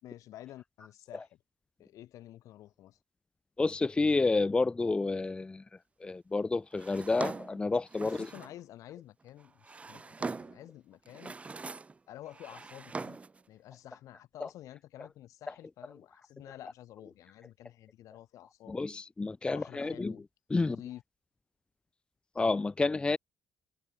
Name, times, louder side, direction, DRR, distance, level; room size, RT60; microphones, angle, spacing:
voice 1, 0.0-1.4 1.8-3.0 8.0-11.4 12.1-13.2 13.5-18.9 19.5-20.2 20.6-21.0, left 13 dB, 75° left, 3.5 m, -50 dB
voice 2, 3.6-5.6 6.0-8.3 14.4-14.5 15.5-15.6 18.7-20.8 22.4-23.2, left 3 dB, 15° left, 0.7 m, -30 dB
Drawer open or close, 6.8-8.6 9.4-10.7 11.1-12.0 12.3-13.4, right 4 dB, 25° right, 2.7 m, -42 dB
cardioid pair, 115°, 6 cm